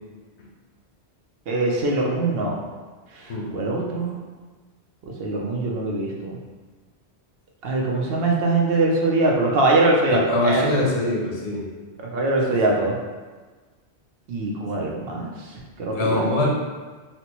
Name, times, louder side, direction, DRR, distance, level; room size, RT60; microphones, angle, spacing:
voice 1, 1.5-2.6 3.1-4.2 5.0-6.4 7.6-10.9 12.1-13.0 14.3-16.3, right 2 dB, 65° right, -1 dB, 0.8 m, -23 dB
voice 2, 10.1-11.7 12.5-12.8 14.8-14.9 15.9-16.5, left 2 dB, 85° left, -2 dB, 1.0 m, -24 dB
4.2 x 2.1 x 2.9 m, 1.3 s
omnidirectional pair, 1.1 m